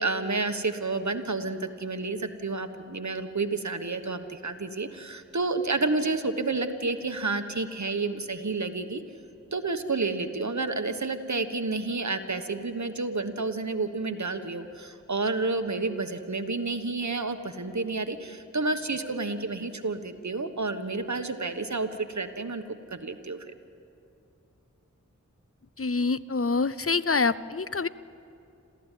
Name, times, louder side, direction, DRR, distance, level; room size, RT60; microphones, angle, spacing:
voice 1, 0.0-9.0 9.5-22.6 22.9-23.5, right 3 dB, 70° right, 8 dB, 1.3 m, -30 dB
voice 2, 25.8-27.9, left 4 dB, 50° left, 16 dB, 0.6 m, -26 dB
27.0 x 15.0 x 9.2 m, 2.6 s
wide cardioid pair, 45°, 29 cm